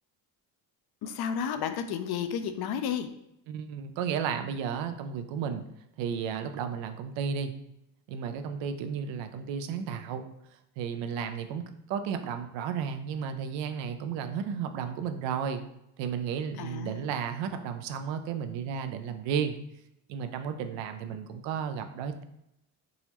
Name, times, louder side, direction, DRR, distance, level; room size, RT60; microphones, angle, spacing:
voice 1, 1.0-3.1 16.6-17.0, left 8 dB, 60° left, 8 dB, 0.5 m, -32 dB
voice 2, 3.5-5.6 6.0-7.5 8.1-10.2 10.8-11.6 11.9-15.6 16.0-19.6 20.1-22.2, right 7 dB, 80° right, 8 dB, 0.6 m, -33 dB
3.9 x 2.9 x 2.9 m, 0.81 s
supercardioid pair, 70°, 43 cm